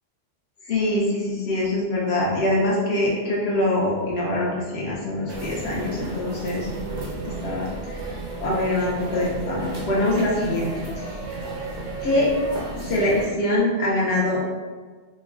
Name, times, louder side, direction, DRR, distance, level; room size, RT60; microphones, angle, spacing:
voice 1, 0.6-8.1 8.4-11.2 12.0-12.3 12.8-14.5, left 1 dB, 75° left, -4 dB, 0.9 m, -24 dB
sound 1, 5.3-13.3, right 2 dB, 55° right, 0.5 m, -33 dB
3.2 x 2.2 x 2.3 m, 1.4 s
omnidirectional pair, 1.1 m